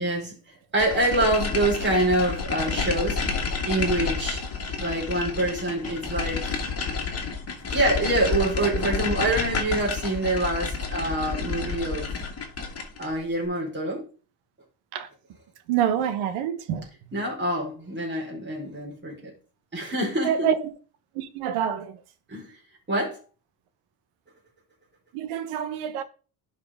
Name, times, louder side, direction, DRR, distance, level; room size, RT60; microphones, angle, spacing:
voice 1, 0.0-6.6 7.7-12.1 13.0-14.0 17.1-19.3 19.7-20.5 22.3-22.6 22.9-23.2, right 1 dB, 20° right, 4.2 m, -26 dB
sound 1, 0.8-13.1, left 4 dB, 30° left, 2.1 m, -30 dB
voice 2, 15.7-16.9 20.2-20.7 21.1-22.0 25.1-26.0, right 9 dB, 85° right, 1.2 m, -26 dB
11.0 x 4.8 x 3.6 m
cardioid pair, 125°, 49 cm